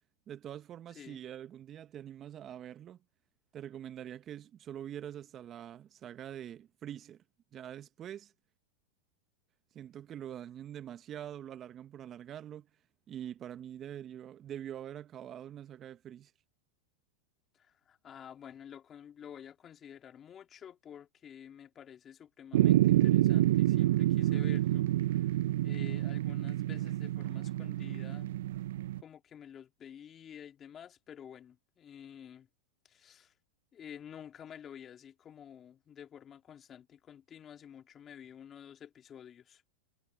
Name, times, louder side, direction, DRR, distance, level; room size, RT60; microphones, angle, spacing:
voice 1, 0.3-3.0 3.5-7.2 7.5-8.3 9.7-12.7 13.1-16.3, right 10 dB, 35° right, 1.1 m, -44 dB
voice 2, 17.5-25.4 25.6-28.3 29.0-32.5 32.8-33.3 33.7-39.6, left 9 dB, 30° left, 3.0 m, -50 dB
sound 1, 22.5-29.0, right 14 dB, 70° right, 0.4 m, -28 dB
hypercardioid pair, 105°, 0 cm